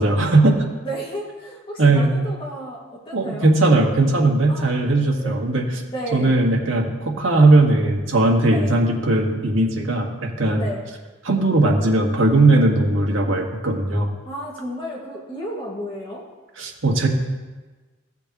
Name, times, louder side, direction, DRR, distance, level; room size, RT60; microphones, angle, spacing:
voice 1, 0.0-0.6 1.8-2.1 3.1-5.7 6.1-10.7 11.2-14.1 16.6-17.1, right 2 dB, 80° right, -1 dB, 1.7 m, -18 dB
voice 2, 0.8-3.5 4.5-4.7 5.2-5.4 5.9-6.4 8.4-8.7 10.6-10.9 14.2-16.2, equal, 25° left, -4 dB, 2.0 m, -32 dB
16.0 x 6.9 x 3.0 m, 1.3 s
head